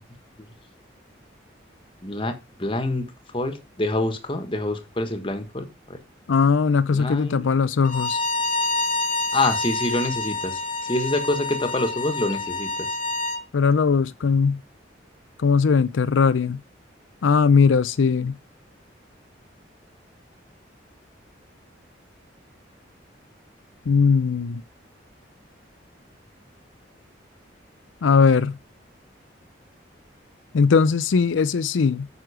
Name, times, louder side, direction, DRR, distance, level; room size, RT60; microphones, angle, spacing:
voice 1, 2.0-3.1 3.3-6.0 6.9-7.5 9.3-12.9, left 2 dB, 25° left, 1.4 m, -26 dB
voice 2, 6.3-8.2 13.5-14.6 15.4-16.6 17.2-18.4 23.9-24.6 28.0-28.6 30.5-32.1, left 5 dB, 80° left, 0.5 m, -19 dB
Bowed string instrument, 7.9-13.4, left 2 dB, 40° left, 1.0 m, -27 dB
9.2 x 6.3 x 4.9 m
head